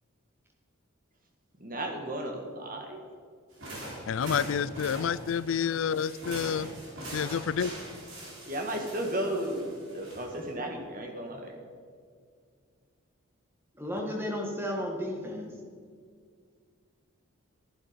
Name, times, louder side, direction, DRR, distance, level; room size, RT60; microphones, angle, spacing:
voice 1, 1.6-3.0 6.6-6.8 8.5-11.5, right 1 dB, 40° right, 2 dB, 1.7 m, -34 dB
sound 1, 3.5-10.5, right 1 dB, 65° right, 3.5 m, -42 dB
voice 2, 4.1-6.7 7.1-7.7, left 7 dB, 65° left, 19 dB, 0.4 m, -29 dB
voice 3, 13.7-15.5, equal, 10° right, 0 dB, 1.6 m, -33 dB
12.0 x 11.0 x 5.2 m, 2.1 s
head